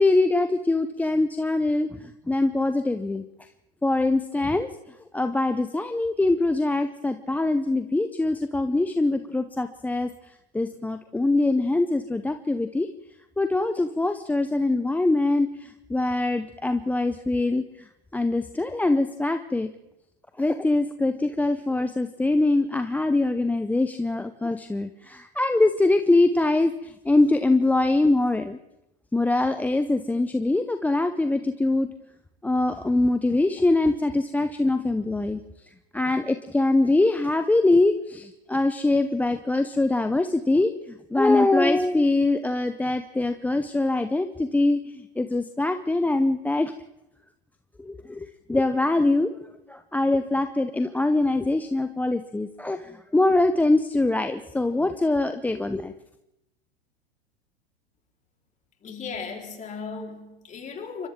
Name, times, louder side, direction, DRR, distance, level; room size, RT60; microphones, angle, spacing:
voice 1, 0.0-3.2 3.8-4.7 5.1-10.1 10.5-12.9 13.4-17.9 18.1-19.7 20.4-28.6 29.1-31.9 32.4-35.4 35.9-46.7 47.8-49.3 49.7-55.9, left 2 dB, 5° left, 0.7 m, -23 dB
voice 2, 58.8-61.1, left 5 dB, 25° left, 4.2 m, -36 dB
28.5 x 24.5 x 3.7 m
hypercardioid pair, 110°, 31 cm